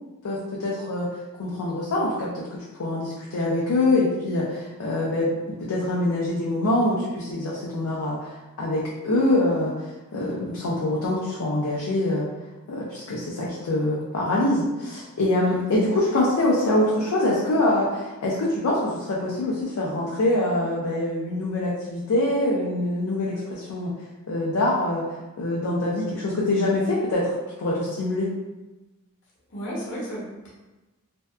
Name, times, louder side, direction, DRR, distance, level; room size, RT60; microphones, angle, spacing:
voice 1, 0.2-1.1 1.4-2.3 2.7-12.2 12.7-23.9 24.3-25.0 25.4-27.3 27.6-28.3, left 1 dB, 70° left, -5 dB, 0.4 m, -24 dB
voice 2, 29.5-30.5, equal, 55° left, -6 dB, 0.8 m, -33 dB
2.6 x 2.2 x 2.2 m, 1.1 s
head